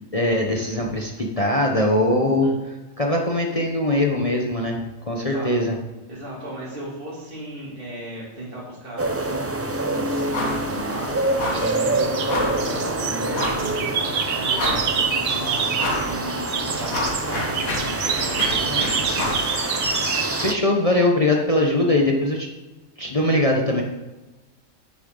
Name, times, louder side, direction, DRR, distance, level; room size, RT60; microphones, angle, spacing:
voice 1, 0.1-2.5 3.0-4.8 5.1-5.7 20.4-22.5 23.0-23.8, left 1 dB, 30° left, 0 dB, 1.0 m, -21 dB
voice 2, 2.2-2.5 5.2-5.7 6.1-19.4, right 1 dB, 40° right, -8 dB, 2.8 m, -36 dB
sound 1, 9.0-20.5, right 2 dB, 25° right, 0.3 m, -26 dB
sound 2, 10.3-10.7 10.9-11.1 11.4-11.7 12.3-12.6 13.3-13.7 14.2-14.3 14.5-15.1 15.8-16.1 16.5-19.5, left 1 dB, 85° left, 2.2 m, -28 dB
sound 3, 10.5-11.2 11.5-16.0 16.3-20.3, right 6 dB, 80° right, 1.3 m, -27 dB
10.0 x 9.9 x 3.9 m, 1.1 s
omnidirectional pair, 1.4 m